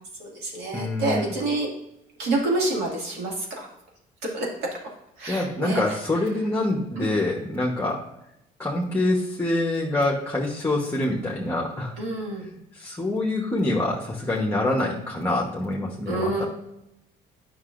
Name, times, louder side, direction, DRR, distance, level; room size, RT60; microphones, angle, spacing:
voice 1, 0.0-1.7 2.2-3.7 4.2-4.7 5.2-6.0 7.0-7.1 12.0-12.5 16.1-16.5, right 2 dB, 85° right, -2 dB, 2.2 m, -28 dB
voice 2, 0.7-1.3 5.3-8.0 8.6-11.9 12.4-16.4, left 2 dB, 10° left, -2 dB, 1.0 m, -26 dB
9.5 x 5.9 x 2.5 m, 0.84 s
cardioid pair, 110°, 17 cm